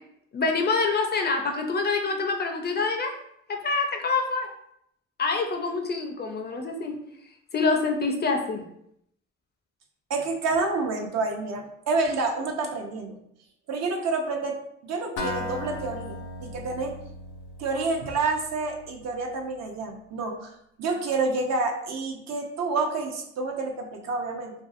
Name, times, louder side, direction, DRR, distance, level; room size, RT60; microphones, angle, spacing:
voice 1, 0.3-3.1 3.5-4.5 5.2-6.9 7.5-8.6, left 4 dB, 35° left, 3 dB, 0.4 m, -26 dB
voice 2, 10.1-13.2 13.7-16.9 17.6-24.5, right 3 dB, 60° right, 2 dB, 0.6 m, -29 dB
Acoustic guitar, 15.2-19.0, left 2 dB, 85° left, 0.6 m, -37 dB
2.6 x 2.3 x 2.5 m, 0.74 s
cardioid pair, 90°, 30 cm